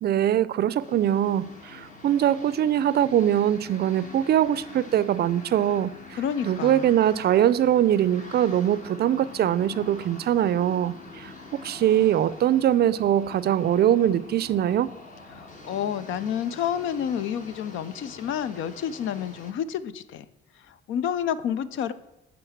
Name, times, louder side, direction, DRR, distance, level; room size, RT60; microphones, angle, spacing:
voice 1, 0.0-5.9 6.4-11.3 11.6-14.9, right 11 dB, 55° right, 0.4 m, -22 dB
sound 1, 0.8-19.5, left 3 dB, 40° left, 1.6 m, -45 dB
voice 2, 6.2-6.9 15.3-20.2 20.7-21.9, left 9 dB, 80° left, 0.5 m, -29 dB
9.1 x 3.9 x 7.1 m
cardioid pair, 90°, 20 cm